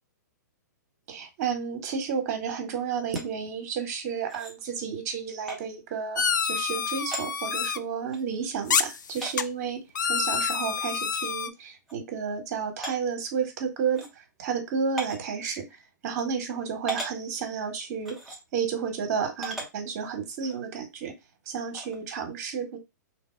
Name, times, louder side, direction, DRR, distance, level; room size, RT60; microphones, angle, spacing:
voice 1, 1.1-9.8 10.1-21.1 21.4-22.8, right 6 dB, 50° right, 1.7 m, -32 dB
sound 1, 3.1-3.2 4.3-4.6 5.5-5.6 6.8-6.9 7.1-7.3 8.1-8.2 9.2-9.4 10.6-10.7 11.1-11.2 11.9-12.0 12.8-13.0 13.9-14.1 15.0-15.2 16.2-16.3 16.9-17.1 18.0-18.4 19.4-19.7 20.4-20.5 21.7-22.0, right 1 dB, ahead, 1.3 m, -36 dB
sound 2, 6.2-7.8 8.7-9.4 9.9-11.5, left 6 dB, 85° left, 0.4 m, -27 dB
3.2 x 2.8 x 4.5 m
hypercardioid pair, 120°, 10 cm